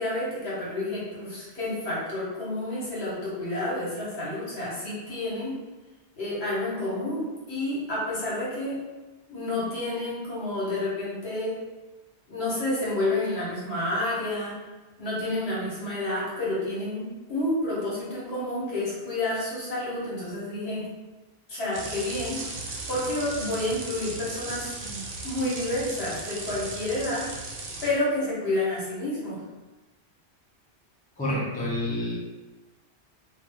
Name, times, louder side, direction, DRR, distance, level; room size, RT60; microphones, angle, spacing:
voice 1, 0.0-5.5 6.2-8.8 9.3-11.5 12.3-14.5 15.0-20.9 21.5-27.2 27.8-29.4, left 1 dB, 65° left, -7 dB, 1.4 m, -30 dB
sound 1, 21.7-27.9, right 3 dB, 50° right, 0.6 m, -37 dB
voice 2, 31.2-32.2, left 1 dB, 10° left, -6 dB, 0.4 m, -28 dB
2.7 x 2.3 x 3.4 m, 1.1 s
omnidirectional pair, 1.1 m